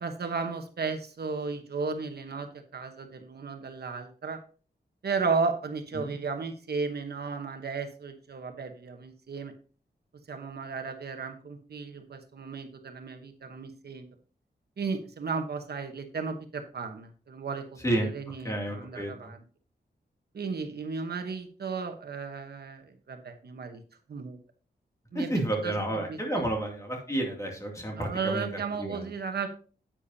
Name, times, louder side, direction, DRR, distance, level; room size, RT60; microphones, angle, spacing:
voice 1, 0.0-4.4 5.0-9.5 10.3-14.1 14.8-17.8 18.1-19.4 20.3-23.8 24.1-24.4 25.1-25.3 25.6-26.4 28.0-29.5, right 4 dB, 65° right, 6 dB, 1.1 m, -34 dB
voice 2, 17.8-19.3 25.1-29.1, right 1 dB, 15° left, 0 dB, 2.5 m, -31 dB
10.5 x 8.6 x 2.8 m, 0.39 s
wide cardioid pair, 170°, 17 cm